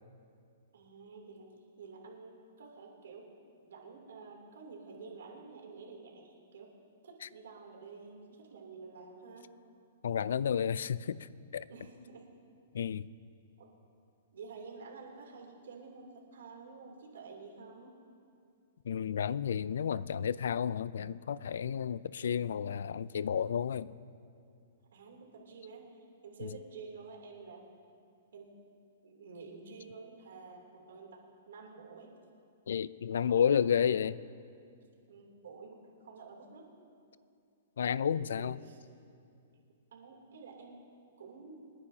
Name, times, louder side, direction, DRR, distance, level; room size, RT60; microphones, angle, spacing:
voice 1, 0.7-1.5 1.8-3.2 3.6-6.7 7.0-9.5 11.6-12.3 13.6-13.7 14.3-18.0 24.9-27.7 28.3-28.6 29.0-32.1 33.2-33.9 35.1-36.7 38.2-38.8 39.9-40.8 41.2-41.6, right 4 dB, 80° right, -1 dB, 3.0 m, -50 dB
voice 2, 10.0-11.7 12.7-13.1 18.9-23.9 26.4-26.5 32.7-34.1 37.8-38.6, left 8 dB, 80° left, 19 dB, 0.4 m, -31 dB
28.5 x 9.8 x 2.8 m, 2.4 s
hypercardioid pair, 150°, 0 cm